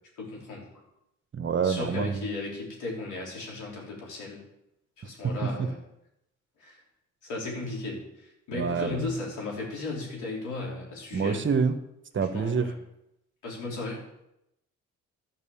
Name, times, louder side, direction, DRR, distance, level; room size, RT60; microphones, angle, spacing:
voice 1, 0.2-0.6 1.6-4.4 5.0-5.8 6.6-6.8 7.2-11.4 12.1-12.8 13.4-14.0, left 3 dB, 90° left, -2 dB, 4.1 m, -36 dB
voice 2, 1.3-2.2 5.6-5.7 8.5-9.1 11.1-11.7 12.1-12.7, right 6 dB, 40° right, 9 dB, 1.2 m, -27 dB
12.0 x 5.7 x 7.1 m, 0.83 s
cardioid pair, 90°, 30 cm